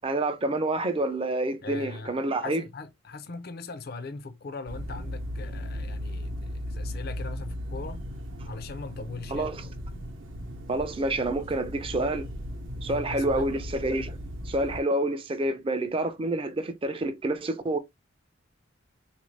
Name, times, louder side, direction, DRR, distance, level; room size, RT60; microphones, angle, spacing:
voice 1, 0.0-2.6 9.3-9.6 10.7-12.3 12.8-14.2 14.5-17.8, right 2 dB, 25° right, 0.4 m, -28 dB
voice 2, 1.6-8.0 8.5-9.5 12.8-13.6, left 3 dB, 50° left, 0.5 m, -40 dB
sound 1, 4.7-14.8, equal, 70° right, 0.7 m, -37 dB
3.6 x 2.5 x 3.2 m
head